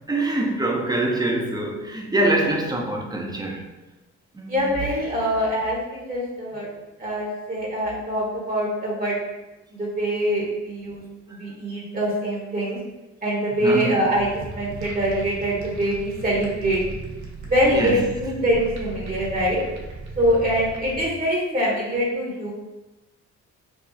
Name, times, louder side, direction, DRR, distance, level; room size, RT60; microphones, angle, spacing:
voice 1, 0.1-3.6 4.3-4.7 11.3-11.4 13.6-14.0 17.7-18.0, right 2 dB, 15° right, 1 dB, 0.7 m, -24 dB
voice 2, 4.5-6.7 7.0-9.1 9.7-11.0 11.3-12.8 13.2-16.8 17.5-19.6 20.2-22.5, equal, 30° right, -4 dB, 1.0 m, -24 dB
sound 1, 14.1-21.1, right 2 dB, 75° right, 0.8 m, -37 dB
4.8 x 2.3 x 2.7 m, 1.1 s
cardioid pair, 90°, 30 cm